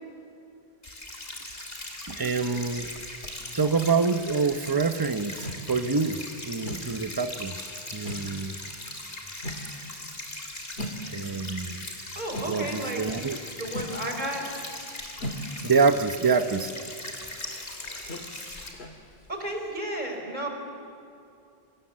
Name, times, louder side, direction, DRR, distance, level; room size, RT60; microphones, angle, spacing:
sound 1, 0.8-18.7, left 1 dB, 65° left, 3.8 m, -39 dB
sound 2, 1.5-3.9 4.2-12.8 13.1-19.8, equal, 85° left, 2.2 m, -41 dB
voice 1, 2.2-2.9 3.6-6.2 6.4-7.5 7.9-8.6 11.1-11.9 12.4-13.4 15.6-16.7, right 4 dB, 25° right, 9 dB, 0.9 m, -26 dB
voice 2, 12.1-13.0 13.5-14.4 19.3-20.5, right 1 dB, 45° right, 3 dB, 4.6 m, -32 dB
29.5 x 25.5 x 7.6 m, 2.5 s
omnidirectional pair, 1.1 m